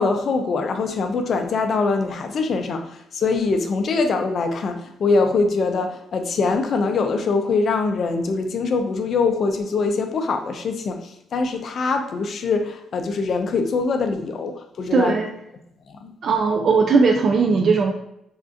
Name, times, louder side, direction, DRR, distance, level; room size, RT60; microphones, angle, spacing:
voice 1, 0.0-15.2 15.9-16.1, left 4 dB, 55° left, 5 dB, 0.4 m, -23 dB
voice 2, 14.9-15.3 16.2-17.9, right 4 dB, 55° right, 1 dB, 0.3 m, -18 dB
3.5 x 2.4 x 2.5 m, 0.79 s
cardioid pair, 90°, 0 cm